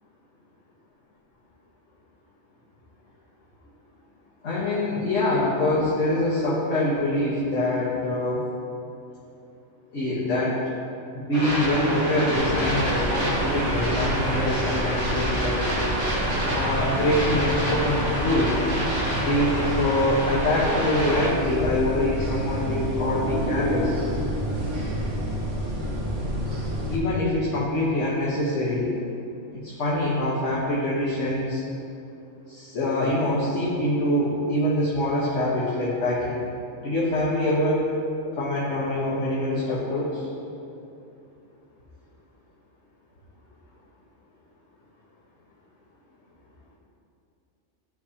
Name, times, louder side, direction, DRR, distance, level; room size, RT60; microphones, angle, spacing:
voice 1, 4.4-8.5 9.9-10.6 11.1-15.6 16.5-18.6 19.2-24.0 26.9-28.9 29.5-31.6 32.5-36.4 36.8-37.9 38.3-40.3, left 1 dB, 70° left, -7 dB, 1.5 m, -24 dB
sound 1, 11.3-21.3, equal, 45° right, 1.6 m, -27 dB
sound 2, 12.3-27.0, equal, 70° right, 1.5 m, -30 dB
12.5 x 4.8 x 2.9 m, 2.7 s
omnidirectional pair, 1.3 m